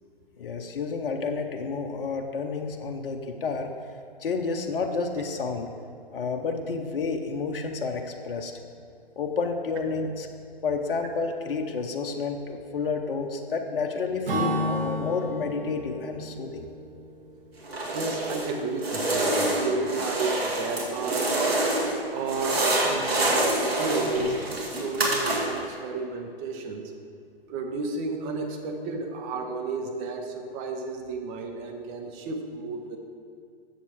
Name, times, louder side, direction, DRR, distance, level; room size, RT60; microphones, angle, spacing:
voice 1, 0.4-3.7 4.2-5.7 6.1-8.5 9.2-10.3 10.6-16.7, left 4 dB, 60° left, 4 dB, 0.8 m, -30 dB
Acoustic guitar / Strum, 14.3-17.9, equal, 60° right, 1.8 m, -32 dB
sound 1, 17.6-18.5 18.8-22.0 22.3-25.7, right 1 dB, 80° right, 1.8 m, -26 dB
voice 2, 17.9-21.4 22.1-26.9 27.5-33.0, right 3 dB, 20° right, 3 dB, 0.6 m, -32 dB
7.2 x 6.9 x 4.4 m, 2.4 s
figure-of-eight pair, 130°, 30 cm